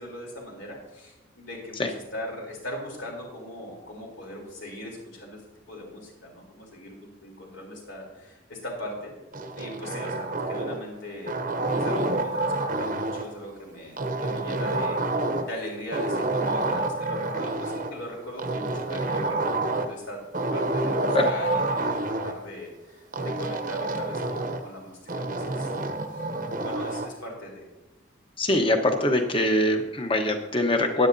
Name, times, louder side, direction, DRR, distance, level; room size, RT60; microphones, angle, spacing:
voice 1, 0.0-5.4 5.7-9.1 9.5-11.4 11.7-20.2 20.5-25.7 26.1-26.2 26.5-27.6, left 1 dB, 70° left, -1 dB, 3.5 m, -39 dB
sound 1, 9.3-10.9 11.3-13.3 14.0-15.6 15.9-17.9 18.4-20.0 20.3-22.3 23.1-24.7 25.1-27.1, right 2 dB, 40° right, 0.7 m, -28 dB
voice 2, 28.4-31.1, left 1 dB, 25° left, 5 dB, 1.0 m, -23 dB
16.0 x 10.0 x 2.7 m, 1.0 s
head